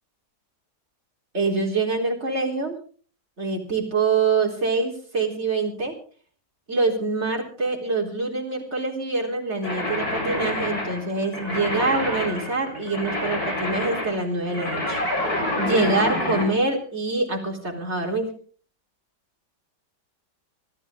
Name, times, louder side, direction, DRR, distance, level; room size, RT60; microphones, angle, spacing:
voice 1, 1.3-2.8 3.4-5.9 6.7-15.0 15.6-18.3, right 3 dB, 40° right, 1 dB, 4.2 m, -25 dB
sound 1, 9.6-16.5, left 1 dB, 60° left, 6.1 m, -28 dB
24.5 x 14.5 x 3.7 m, 0.40 s
omnidirectional pair, 1.9 m